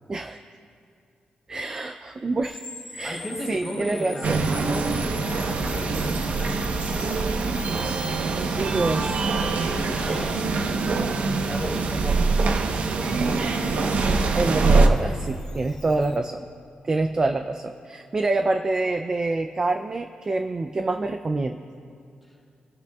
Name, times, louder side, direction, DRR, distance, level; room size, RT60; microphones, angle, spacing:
voice 1, 1.5-2.6 2.9-3.2 3.5-4.4 8.4-9.2 10.0-10.3 14.4-16.5 16.8-21.6, right 2 dB, 25° right, 6 dB, 0.4 m, -26 dB
sound 1, 2.4-16.1, left 2 dB, 25° left, 3.4 m, -44 dB
voice 2, 3.0-7.3 9.7-14.5, equal, ahead, -3 dB, 4.1 m, -36 dB
sound 2, 4.2-14.9, right 3 dB, 60° right, 1.0 m, -24 dB
27.0 x 17.5 x 2.4 m, 2.4 s
wide cardioid pair, 160°, 3 cm